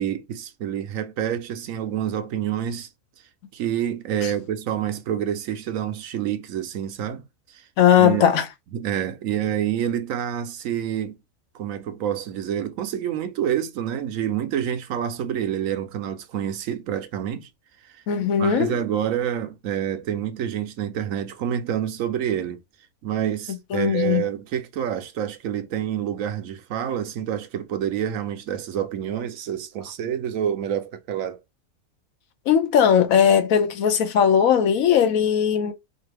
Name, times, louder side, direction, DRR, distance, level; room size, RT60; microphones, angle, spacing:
voice 1, 0.0-2.9 3.5-7.6 8.0-8.2 8.7-11.1 11.5-17.5 17.8-18.0 18.4-22.6 23.0-31.4, right 10 dB, 70° right, 1.0 m, -27 dB
voice 2, 7.8-8.5 18.1-18.8 23.5-24.2 32.5-35.7, left 8 dB, 70° left, 1.1 m, -19 dB
4.5 x 2.5 x 3.3 m
omnidirectional pair, 1.6 m